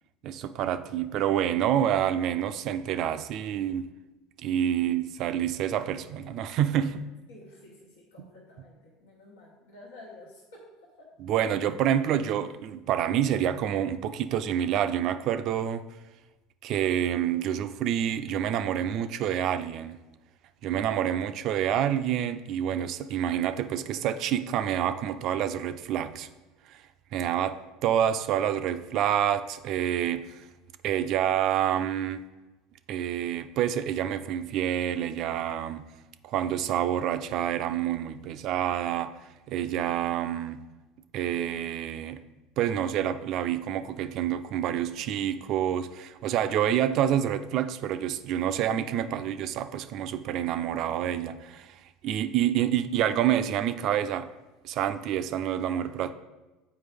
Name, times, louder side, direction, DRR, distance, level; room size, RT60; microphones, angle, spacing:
voice 1, 0.2-3.9 4.4-7.0 8.2-8.3 11.2-15.8 16.6-20.0 20.6-26.3 26.7-26.8 27.1-30.4 30.8-32.2 32.9-35.9 36.2-39.1 39.5-40.6 41.1-42.2 42.6-51.7 52.0-54.3 54.6-56.1, right 10 dB, 60° right, 0.4 m, -28 dB
voice 2, 7.3-8.7 9.0-10.6 11.0-11.1 21.0-21.2 53.3-53.4, left 2 dB, 85° left, 1.2 m, -50 dB
7.7 x 4.6 x 3.4 m
hypercardioid pair, 85°, 0 cm